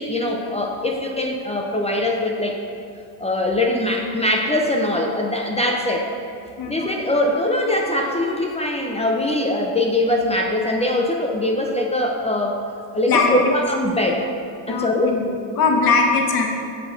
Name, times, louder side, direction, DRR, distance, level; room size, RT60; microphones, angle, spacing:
voice 1, 0.0-2.6 3.2-6.1 6.7-12.6 12.9-14.3 14.7-15.2, left 1 dB, 15° left, 1 dB, 0.5 m, -22 dB
voice 2, 13.1-13.4 14.7-16.5, left 4 dB, 50° left, 2 dB, 1.0 m, -20 dB
8.1 x 6.7 x 3.6 m, 2.5 s
cardioid pair, 125°, 45 cm